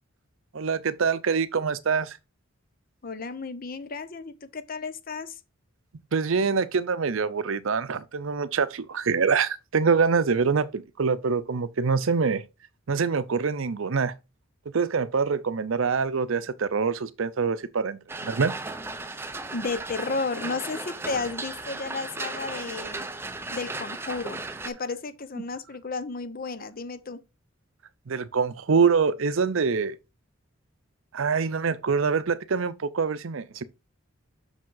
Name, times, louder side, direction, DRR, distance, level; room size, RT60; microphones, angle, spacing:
voice 1, 0.5-2.2 6.1-12.4 12.9-14.1 14.7-18.5 28.1-30.0 31.1-33.6, right 5 dB, 70° right, 0.6 m, -25 dB
voice 2, 3.0-5.4 19.5-23.1 23.5-27.2, left 4 dB, 45° left, 0.8 m, -33 dB
sound 1, 18.1-24.7, right 2 dB, 10° right, 0.5 m, -36 dB
6.1 x 5.1 x 3.9 m
head